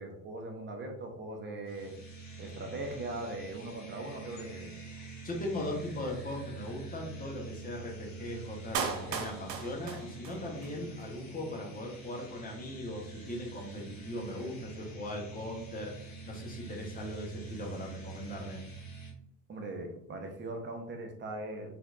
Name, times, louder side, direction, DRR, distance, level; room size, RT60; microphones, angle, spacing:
voice 1, 0.0-1.9 2.4-4.7 19.5-21.7, right 2 dB, 20° right, 3 dB, 0.7 m, -40 dB
sound 1, 1.7-19.1, right 4 dB, 35° left, 1.4 m, -46 dB
voice 2, 4.9-18.6, left 1 dB, 15° left, 0 dB, 1.0 m, -39 dB
Clapping, 8.7-10.7 11.0-11.1, right 6 dB, 85° right, 0.6 m, -36 dB
4.2 x 2.7 x 2.4 m, 0.74 s
figure-of-eight pair, 65°, 50 cm